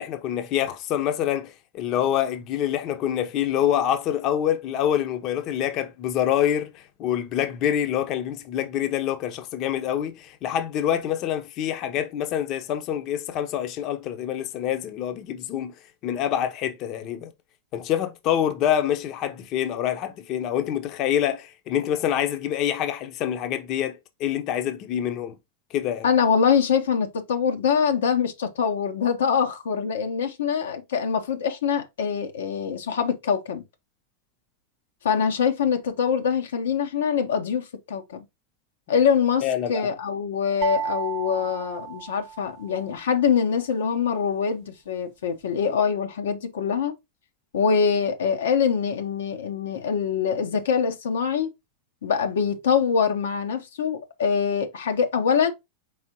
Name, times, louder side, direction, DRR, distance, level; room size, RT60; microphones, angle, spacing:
voice 1, 0.0-15.7 16.0-17.3 17.7-25.3 25.7-26.1 39.4-39.9, left 10 dB, 45° left, 0.7 m, -26 dB
voice 2, 26.0-33.6 35.0-38.2 38.9-39.4 39.7-46.9 47.5-51.5 52.0-55.5, left 6 dB, 80° left, 0.9 m, -24 dB
sound 1, 40.6-42.8, right 9 dB, 45° right, 0.8 m, -32 dB
4.8 x 3.6 x 2.9 m
hypercardioid pair, 110°, 0 cm